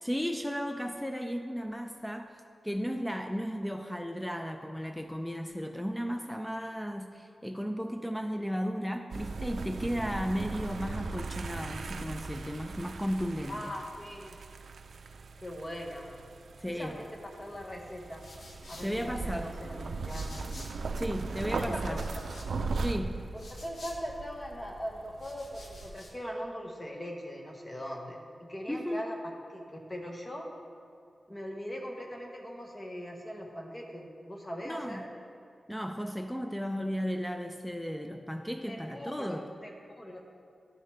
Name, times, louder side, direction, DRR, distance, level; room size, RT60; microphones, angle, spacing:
voice 1, 0.0-2.4 2.6-13.7 16.6-17.0 18.8-19.5 21.0-22.0 22.8-23.3 28.7-29.1 34.7-35.0 35.7-39.5, equal, 5° left, 5 dB, 0.3 m, -35 dB
sound 1, 9.1-26.1, right 3 dB, 80° right, 0.4 m, -39 dB
voice 2, 13.5-14.4 15.4-16.2 16.6-18.2 18.7-20.4 21.5-22.3 23.3-29.2 29.5-30.5 31.3-35.1 38.7-40.2, equal, 20° left, 1 dB, 1.1 m, -41 dB
sound 2, 17.9-21.0 21.3-24.5 25.0-26.2, left 2 dB, 70° left, 1.1 m, -52 dB
12.0 x 6.5 x 3.3 m, 2.3 s
wide cardioid pair, 110°, 0 cm